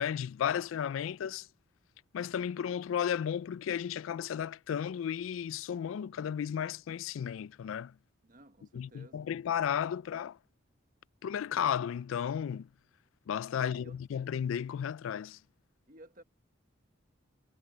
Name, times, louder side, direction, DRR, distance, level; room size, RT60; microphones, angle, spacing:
voice 1, 0.0-1.5 2.1-7.9 8.7-10.4 11.2-12.7 13.3-15.4, left 8 dB, 85° left, 0.3 m, -34 dB
voice 2, 8.2-9.3 13.6-14.0 15.9-16.2, right 1 dB, 40° right, 1.3 m, -55 dB
head